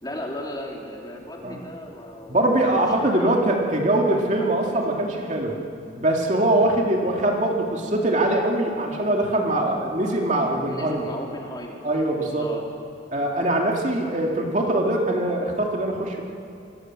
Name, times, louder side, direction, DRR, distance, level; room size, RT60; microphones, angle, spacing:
voice 1, 0.0-3.4 4.0-4.3 4.7-4.8 10.6-11.8 12.2-12.6, left 1 dB, 20° left, -1 dB, 3.4 m, -36 dB
voice 2, 2.3-5.5 5.9-11.1 11.8-12.5 13.1-16.2, right 1 dB, 40° right, 0 dB, 2.8 m, -22 dB
26.0 x 22.5 x 7.8 m, 2.5 s
head